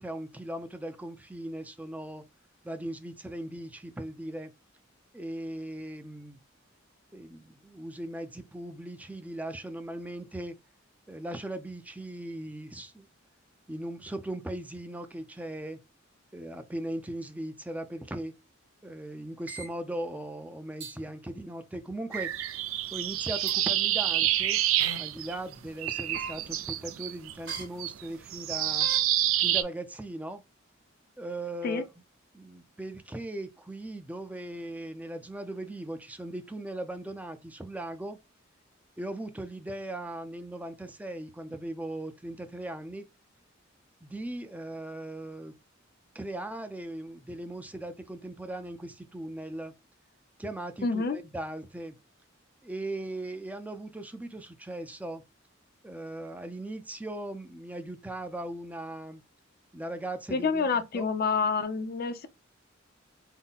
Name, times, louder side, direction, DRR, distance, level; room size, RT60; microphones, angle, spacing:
voice 1, 0.0-2.3 2.6-4.5 5.1-6.4 7.1-10.6 11.1-13.1 13.7-15.8 16.3-18.4 18.8-22.3 22.9-24.6 25.0-28.9 29.4-30.4 31.2-31.9 32.3-38.2 39.0-43.1 44.0-45.6 46.1-49.7 50.4-52.0 52.6-55.2 55.8-59.2 59.7-61.1, right 1 dB, 10° right, 0.5 m, -38 dB
sound 1, 19.5-19.7 20.8-21.0 22.1-22.3 23.5-23.6 24.8-25.0 26.1-26.3 27.5-27.6 28.8-29.0, right 3 dB, 65° right, 1.3 m, -39 dB
sound 2, 22.1-25.5 25.8-29.6, right 12 dB, 90° right, 0.4 m, -28 dB
voice 2, 50.8-51.2 60.3-62.3, left 4 dB, 50° left, 0.6 m, -28 dB
3.7 x 2.1 x 4.0 m
head